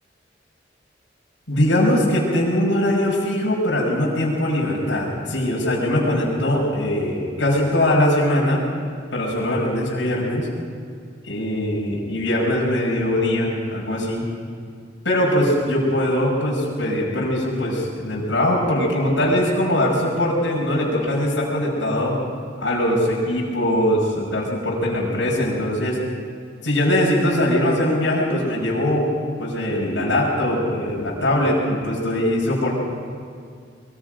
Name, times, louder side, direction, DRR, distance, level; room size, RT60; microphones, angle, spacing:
voice 1, 1.5-8.7 9.1-10.5 11.3-14.2 15.0-22.2 22.6-26.0 26.6-29.1 29.4-32.8, left 1 dB, 90° left, -5 dB, 5.7 m, -21 dB
24.0 x 23.0 x 5.2 m, 2.2 s
head